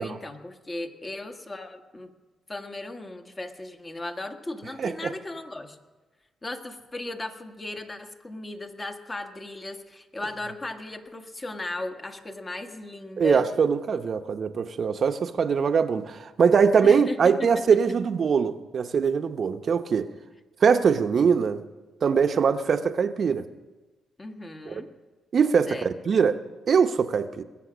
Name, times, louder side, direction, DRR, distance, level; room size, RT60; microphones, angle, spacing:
voice 1, 0.0-2.1 2.5-5.8 6.4-13.5 16.8-17.5 24.2-24.9 25.7-25.9, left 2 dB, 30° left, 1.6 m, -36 dB
voice 2, 4.8-5.1 13.2-20.1 20.6-21.6 22.0-23.5 24.7-24.8 25.3-26.4 26.7-27.4, right 6 dB, 60° right, 0.9 m, -22 dB
21.5 x 7.6 x 6.2 m
cardioid pair, 70°, 0 cm